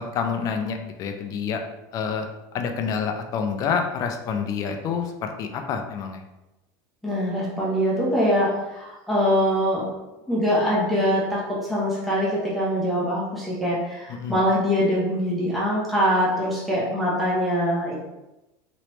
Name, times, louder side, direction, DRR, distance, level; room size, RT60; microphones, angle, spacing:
voice 1, 0.0-1.6 1.9-2.3 2.5-6.2 14.1-14.4, left 6 dB, 35° left, 5 dB, 0.4 m, -28 dB
voice 2, 7.0-9.9 10.3-17.9, equal, ahead, -7 dB, 0.8 m, -23 dB
3.1 x 3.0 x 3.0 m, 0.99 s
cardioid pair, 160°, 10 cm